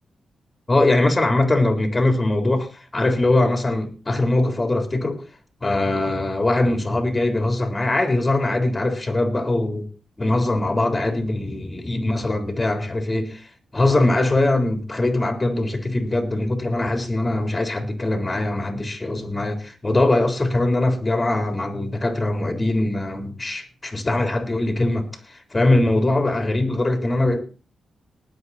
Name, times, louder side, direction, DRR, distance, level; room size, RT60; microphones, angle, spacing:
voice 1, 0.7-5.2 5.6-9.9 10.2-27.4, left 2 dB, 30° left, 3.8 m, -22 dB
19.5 x 7.9 x 4.3 m
supercardioid pair, 50°, 0 cm